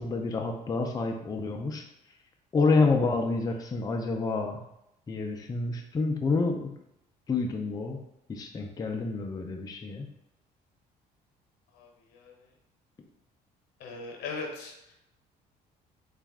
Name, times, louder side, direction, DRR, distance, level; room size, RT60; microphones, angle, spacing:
voice 1, 0.0-1.8 2.5-4.6 5.1-6.7 7.3-8.0 8.3-10.1, left 3 dB, 20° left, 2 dB, 0.5 m, -28 dB
voice 2, 11.7-12.5 13.8-14.9, left 4 dB, 85° left, 2 dB, 0.9 m, -40 dB
4.1 x 2.4 x 3.5 m, 0.84 s
cardioid pair, 110°, 17 cm